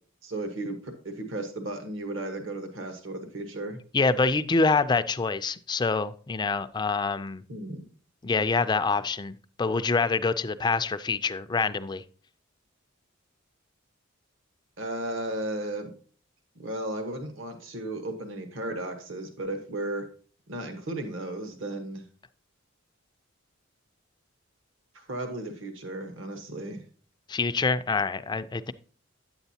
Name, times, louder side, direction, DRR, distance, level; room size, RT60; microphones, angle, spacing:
voice 1, 0.2-3.8 7.5-7.8 14.8-15.9 16.5-20.1 20.5-22.1 24.9-26.8, right 1 dB, 65° right, 1.2 m, -35 dB
voice 2, 3.9-7.4 8.2-12.0 27.3-28.7, left 4 dB, 20° left, 0.4 m, -26 dB
9.4 x 8.0 x 2.8 m
head